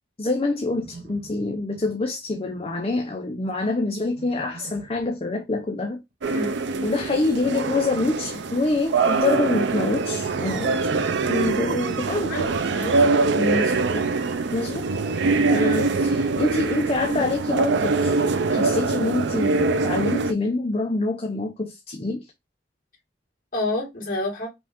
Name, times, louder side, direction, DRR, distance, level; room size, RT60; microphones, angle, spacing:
voice 1, 0.2-6.0 6.8-10.7 11.3-12.4 13.4-14.1 14.5-14.9 15.5-18.2 18.5-22.3, left 2 dB, 30° left, 0.6 m, -26 dB
Livestock farm animals working animals, 0.7-2.0 2.3-2.8 4.1-5.1 6.7-8.4 10.7-12.1 14.1-15.2 17.0-18.7, right 2 dB, 45° right, 0.7 m, -43 dB
sound 1, 6.2-20.3, right 3 dB, 75° right, 0.5 m, -23 dB
voice 2, 12.3-13.0 15.2-15.4 23.5-24.5, left 2 dB, 45° left, 2.5 m, -29 dB
5.1 x 2.4 x 3.5 m
head